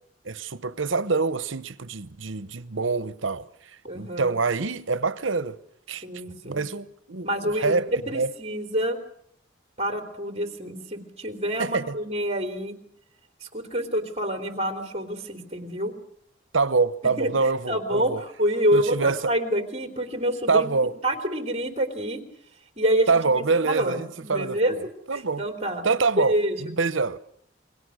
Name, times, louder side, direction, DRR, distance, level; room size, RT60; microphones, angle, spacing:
voice 1, 0.2-3.4 3.9-5.6 5.9-6.0 6.4-7.9 8.1-8.3 11.6-12.0 16.5-18.2 18.7-19.2 20.5-20.9 23.1-25.4 25.8-27.2, right 4 dB, 80° right, 1.0 m, -25 dB
voice 2, 3.8-4.3 6.0-6.7 7.2-9.0 9.8-12.7 13.4-15.9 17.2-17.3 17.7-20.7 21.0-22.2 22.8-24.7 25.1-25.8 26.2-26.7, right 1 dB, 35° right, 3.4 m, -27 dB
29.0 x 22.0 x 6.4 m
head